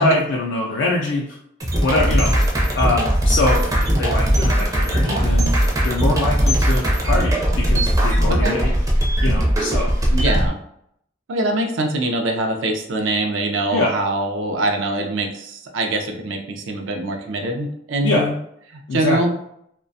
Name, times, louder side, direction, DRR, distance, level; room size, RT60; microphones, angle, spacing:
voice 1, 0.0-1.4 1.8-2.3 2.7-3.6 4.0-8.8 9.2-9.9 13.7-13.9 18.0-18.3 18.9-19.2, left 2 dB, 65° left, -3 dB, 0.4 m, -23 dB
sound 1, 1.6-10.5, equal, 20° right, 0.4 m, -19 dB
voice 2, 10.1-10.6 11.3-18.3 18.9-19.3, right 2 dB, 80° right, 3 dB, 0.4 m, -23 dB
2.3 x 2.2 x 2.6 m, 0.73 s
head